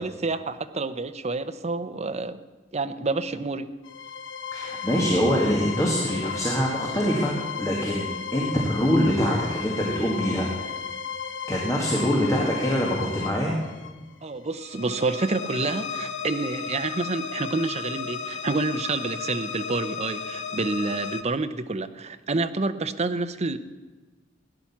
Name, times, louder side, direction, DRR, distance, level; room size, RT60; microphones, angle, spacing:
voice 1, 0.0-2.4 2.7-3.7 14.2-23.6, right 3 dB, 35° right, 9 dB, 0.7 m, -28 dB
sound 1, 3.8-21.2, left 6 dB, 75° left, 1.0 m, -34 dB
voice 2, 4.5-10.7 11.5-13.6, equal, 15° left, -2 dB, 2.1 m, -24 dB
17.0 x 10.5 x 7.3 m, 1.3 s
head